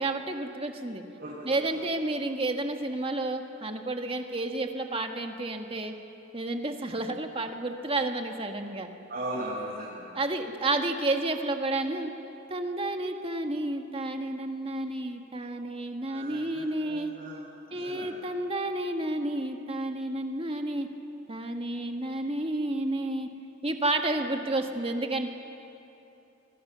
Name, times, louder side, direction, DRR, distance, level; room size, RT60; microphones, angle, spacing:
voice 1, 0.0-1.0 1.4-5.9 6.3-8.9 10.1-12.1 12.5-17.1 17.7-20.9 21.3-23.3 23.6-25.3, right 2 dB, 30° right, 4 dB, 1.7 m, -31 dB
voice 2, 1.2-1.6 9.1-10.1 10.7-10.8 16.1-18.2, right 1 dB, 50° right, -7 dB, 6.1 m, -38 dB
28.0 x 24.0 x 6.9 m, 2.9 s
head